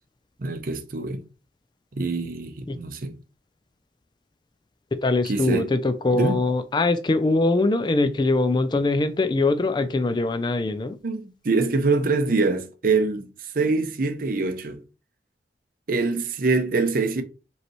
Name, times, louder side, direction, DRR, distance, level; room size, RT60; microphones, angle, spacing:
voice 1, 0.4-1.2 1.9-3.2 5.2-5.7 6.1-6.4 11.0-14.8 15.9-17.2, right 3 dB, 50° right, 0.6 m, -24 dB
voice 2, 5.0-11.0, left 2 dB, 25° left, 0.3 m, -22 dB
5.1 x 3.3 x 3.0 m
head